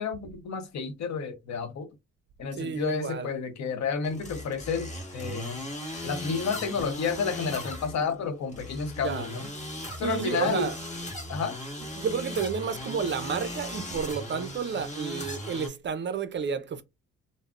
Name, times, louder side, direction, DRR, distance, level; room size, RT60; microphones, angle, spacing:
voice 1, 0.0-1.9 2.4-5.6 6.0-9.5 10.0-10.7 11.3-11.6, left 5 dB, 65° left, 0.7 m, -31 dB
voice 2, 2.5-3.3 9.0-9.3 10.0-10.8 12.0-16.8, right 6 dB, 40° right, 0.4 m, -31 dB
sound 1, 4.0-15.7, left 1 dB, 25° left, 1.2 m, -38 dB
3.5 x 2.0 x 2.3 m
cardioid pair, 90°, 30 cm